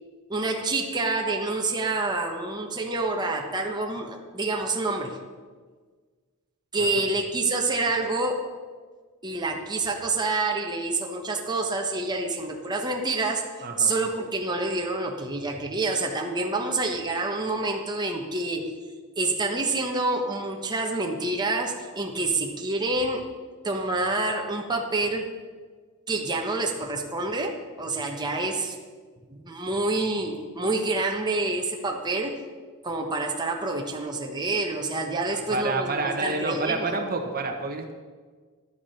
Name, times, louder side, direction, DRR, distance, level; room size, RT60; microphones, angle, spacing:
voice 1, 0.3-5.2 6.7-8.6 9.2-18.7 19.2-23.3 23.6-25.4 26.1-28.8 29.3-32.4 32.8-37.0, right 2 dB, 20° right, 1 dB, 1.2 m, -27 dB
voice 2, 13.6-13.9 35.2-37.9, right 3 dB, 40° right, 4 dB, 1.1 m, -29 dB
12.0 x 9.6 x 5.7 m, 1.5 s
head